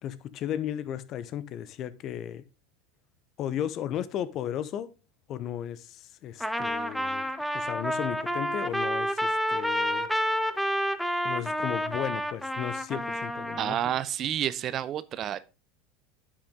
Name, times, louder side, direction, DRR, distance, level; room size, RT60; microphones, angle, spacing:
voice 1, 0.0-2.4 3.4-4.9 5.3-7.3 7.5-10.5 11.2-13.8, left 10 dB, 45° left, 0.9 m, -35 dB
Trumpet, 6.4-13.8, equal, ahead, 1.0 m, -29 dB
voice 2, 13.6-15.4, right 10 dB, 40° right, 0.7 m, -29 dB
9.9 x 6.2 x 3.7 m
hypercardioid pair, 85°, 0 cm